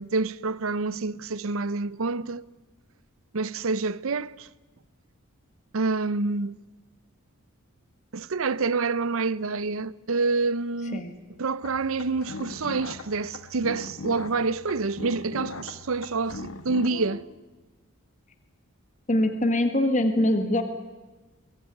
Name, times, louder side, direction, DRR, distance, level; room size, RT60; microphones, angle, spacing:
voice 1, 0.0-2.4 3.3-4.5 5.7-6.6 8.1-11.1 11.4-17.2, right 3 dB, 75° right, 0.7 m, -27 dB
sound 1, 11.6-16.9, left 3 dB, 85° left, 1.6 m, -39 dB
voice 2, 19.1-20.6, left 1 dB, 35° left, 1.5 m, -23 dB
22.0 x 18.0 x 9.4 m
head